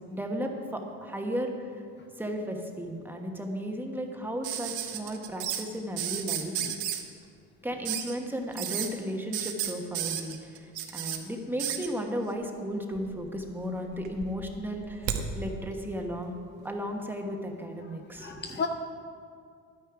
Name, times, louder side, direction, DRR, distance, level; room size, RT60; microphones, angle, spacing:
voice 1, 0.1-1.5 2.2-6.5 7.6-10.4 10.9-16.3 16.6-18.4, equal, 5° right, 2 dB, 1.1 m, -34 dB
sound 1, 4.4-5.6 6.0-7.0 7.8-8.1 8.5-8.9 9.3-11.2 11.6-11.9 12.9-13.5 13.8-15.2 16.6-16.7, right 10 dB, 75° right, 1.1 m, -33 dB
voice 2, 17.8-18.7, left 6 dB, 35° left, 6 dB, 0.5 m, -36 dB
11.5 x 9.5 x 4.8 m, 2.3 s
cardioid pair, 130°, 31 cm